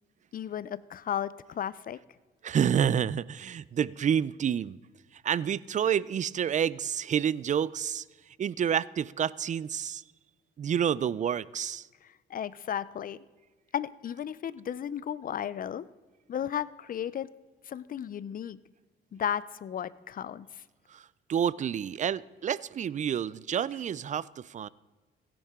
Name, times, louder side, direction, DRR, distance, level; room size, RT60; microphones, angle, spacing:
voice 1, 0.3-2.0 12.0-13.2 13.7-15.9 16.3-17.3 17.7-18.6 19.1-20.6, left 9 dB, 45° left, 18 dB, 0.5 m, -34 dB
voice 2, 2.4-4.8 5.2-8.0 8.4-10.0 10.6-11.9 20.9-21.0 21.3-24.7, right 8 dB, 40° right, 21 dB, 0.4 m, -29 dB
16.5 x 10.0 x 3.7 m, 1.3 s
cardioid pair, 90°, 20 cm